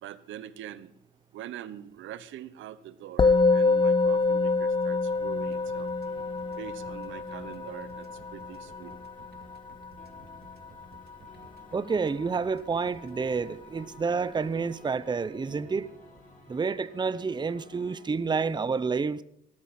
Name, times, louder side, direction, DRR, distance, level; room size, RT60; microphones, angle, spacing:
voice 1, 0.0-0.9 1.3-5.9 6.6-8.9, right 11 dB, 80° right, 15 dB, 1.0 m, -43 dB
Musical instrument, 3.2-12.7, left 3 dB, 25° left, 0.6 m, -27 dB
sound 1, 5.1-18.1, left 2 dB, 40° left, 6.2 m, -55 dB
sound 2, 5.4-13.4, right 6 dB, 55° right, 1.9 m, -56 dB
voice 2, 11.7-15.9 16.5-19.2, right 5 dB, 20° right, 16 dB, 0.7 m, -29 dB
19.0 x 13.5 x 4.3 m, 0.71 s
cardioid pair, 90°, 20 cm